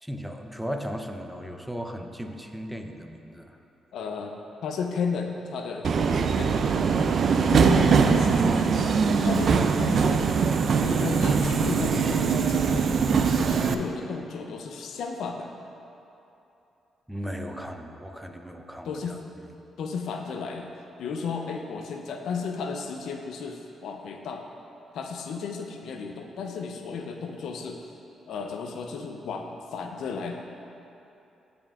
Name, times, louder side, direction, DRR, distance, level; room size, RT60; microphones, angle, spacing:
voice 1, 0.0-3.6 17.1-19.2, equal, 5° right, 4 dB, 0.6 m, -36 dB
voice 2, 3.9-4.3 4.6-6.8 7.5-8.9 9.2-10.3 10.8-15.5 18.8-19.2 19.8-24.4 24.9-27.8 28.3-30.4, left 5 dB, 75° left, 3 dB, 0.5 m, -34 dB
Subway metro underground, 5.8-13.7, right 5 dB, 60° right, 0.4 m, -22 dB
14.0 x 5.2 x 2.4 m, 2.9 s
cardioid pair, 70°, 0 cm